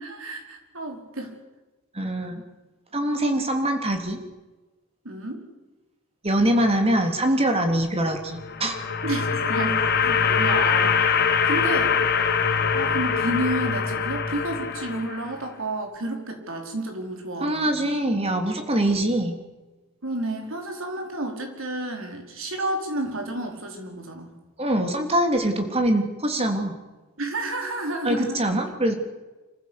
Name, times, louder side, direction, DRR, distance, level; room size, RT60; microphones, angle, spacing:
voice 1, 0.0-1.3 5.0-5.4 9.0-11.0 11.4-11.9 12.7-17.8 20.0-24.4 27.2-28.4, right 1 dB, 70° right, 3 dB, 4.8 m, -31 dB
voice 2, 1.9-2.4 2.9-4.2 6.2-8.8 17.4-19.3 24.6-26.8 28.0-28.9, right 1 dB, 30° right, 5 dB, 3.3 m, -23 dB
sound 1, 8.3-15.4, left 6 dB, 50° left, 1.8 m, -23 dB
26.5 x 15.0 x 8.3 m, 1.2 s
head